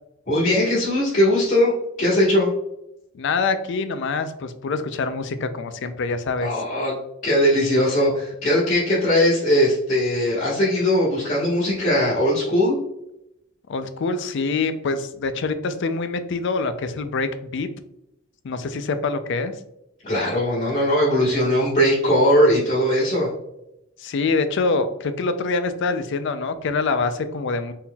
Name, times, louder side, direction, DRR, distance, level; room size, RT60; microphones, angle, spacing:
voice 1, 0.3-1.7 2.0-2.5 6.4-6.9 7.2-12.8 20.0-23.3, left 1 dB, 45° left, -10 dB, 1.4 m, -19 dB
voice 2, 3.1-6.5 13.7-17.7 18.4-19.5 24.0-27.7, left 4 dB, 60° left, 10 dB, 0.4 m, -25 dB
4.2 x 3.7 x 2.3 m, 0.84 s
head